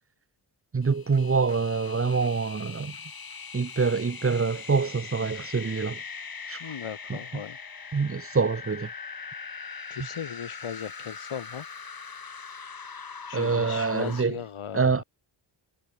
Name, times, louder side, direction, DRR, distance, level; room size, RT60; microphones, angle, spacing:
voice 1, 0.7-2.9 3.5-6.0 6.5-6.6 7.3-7.4 7.9-8.9 13.3-14.4 14.7-15.0, right 4 dB, 30° right, 0.8 m, -25 dB
sound 1, 0.8-14.2, left 5 dB, 45° left, 2.3 m, -41 dB
voice 2, 6.6-7.6 9.9-11.7 13.3-15.0, left 8 dB, 85° left, 2.1 m, -37 dB
wide cardioid pair, 110°, 49 cm